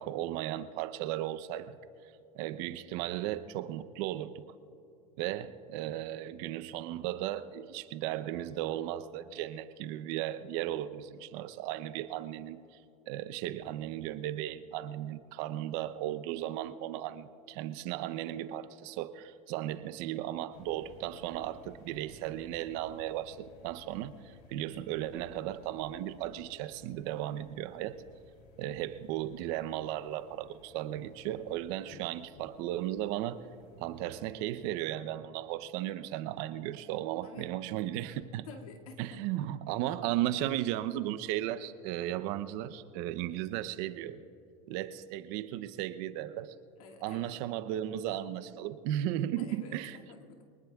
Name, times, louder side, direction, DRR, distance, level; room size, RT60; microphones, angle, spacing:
voice 1, 0.0-1.8 2.3-4.4 5.2-12.6 13.1-28.0 28.6-33.4 33.8-38.5 39.0-44.2 44.7-46.5 47.0-50.0, right 13 dB, 60° right, 12 dB, 0.8 m, -36 dB
sound 1, 20.5-34.4, left 4 dB, 60° left, 3.1 m, -57 dB
voice 2, 37.2-37.5 38.3-39.5 39.8-39.9 46.8-47.4 49.4-50.4, left 4 dB, 85° left, 1 dB, 2.3 m, -51 dB
25.0 x 19.5 x 2.4 m, 2.7 s
supercardioid pair, 125°, 18 cm